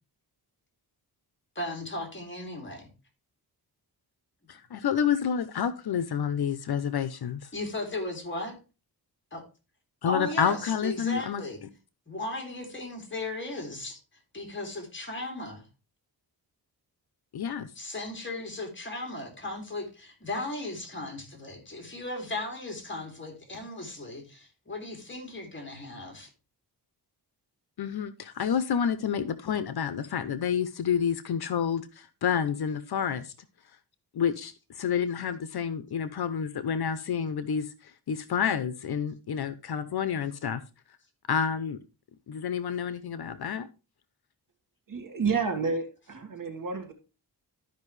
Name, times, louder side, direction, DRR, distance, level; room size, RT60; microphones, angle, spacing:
voice 1, 1.5-2.9 7.5-8.6 9.3-9.4 10.1-11.6 12.1-14.0 14.3-15.6 17.8-26.3, left 2 dB, 30° left, 2 dB, 2.8 m, -36 dB
voice 2, 4.5-7.5 10.0-11.4 17.3-17.7 27.8-33.3 34.1-40.6 41.3-41.8 42.3-43.7, left 7 dB, 65° left, 12 dB, 0.8 m, -29 dB
voice 3, 44.9-46.9, right 5 dB, 50° right, 5 dB, 1.8 m, -30 dB
13.0 x 5.4 x 3.2 m, 0.32 s
wide cardioid pair, 105°, 41 cm